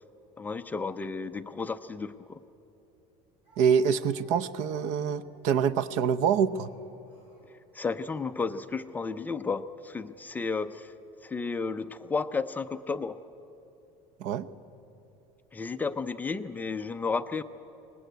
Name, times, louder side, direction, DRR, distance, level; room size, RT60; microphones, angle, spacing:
voice 1, 0.4-2.4 7.5-10.9 11.2-13.2 15.5-17.4, left 4 dB, 10° left, 10 dB, 0.5 m, -33 dB
Speech, 2.3-2.4 3.4-8.3 9.1-9.4 10.3-10.9, right 2 dB, 35° right, 7.1 m, -63 dB
voice 2, 3.6-6.7 14.2-14.5, right 7 dB, 60° right, 16 dB, 0.8 m, -26 dB
23.5 x 19.5 x 9.4 m, 2.9 s
cardioid pair, 165°, 14 cm